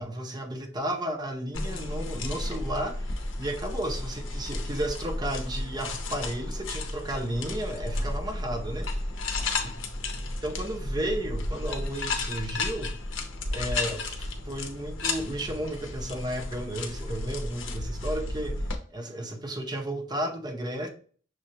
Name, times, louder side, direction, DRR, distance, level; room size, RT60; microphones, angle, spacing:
voice 1, 0.0-8.9 10.4-13.0 13.5-18.6 18.9-20.9, right 1 dB, 20° right, 0.6 m, -33 dB
sound 1, 1.5-18.8, left 2 dB, 85° left, 0.7 m, -33 dB
6.2 x 2.3 x 2.7 m
head